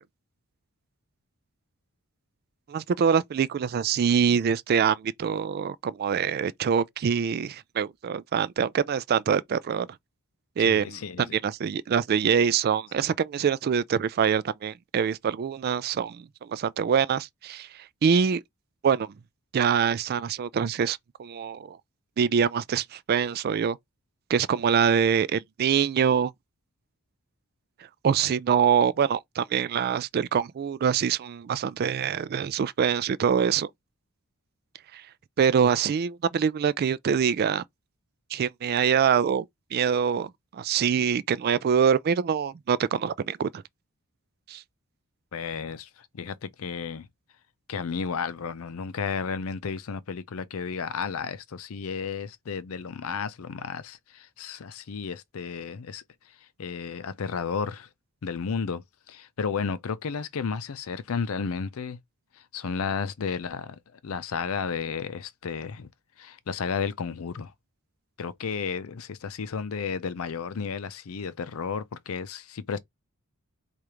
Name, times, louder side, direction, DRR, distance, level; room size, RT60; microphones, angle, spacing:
voice 1, 2.7-9.9 10.6-17.7 18.0-18.4 18.8-19.1 19.5-21.8 22.2-23.8 24.3-26.3 28.0-33.7 34.9-35.0 35.4-37.6 38.3-43.6 44.5-44.6, right 7 dB, 45° right, 0.3 m, -24 dB
voice 2, 10.6-11.3 45.3-47.1 47.7-56.0 56.6-57.9 58.2-62.0 62.5-65.9 66.2-67.5 68.2-72.8, left 6 dB, 70° left, 0.5 m, -33 dB
4.7 x 2.5 x 2.9 m
head